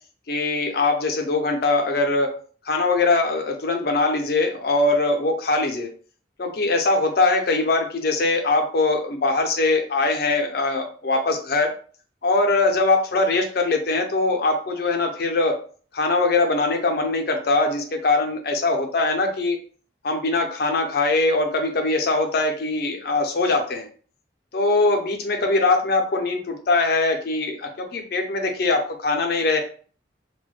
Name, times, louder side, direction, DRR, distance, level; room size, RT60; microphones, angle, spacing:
voice 1, 0.3-2.3 2.7-5.9 6.4-11.7 12.2-15.6 15.9-19.6 20.0-23.9 24.5-29.6, left 3 dB, 55° left, 3 dB, 0.5 m, -22 dB
2.2 x 2.1 x 3.1 m, 0.43 s
head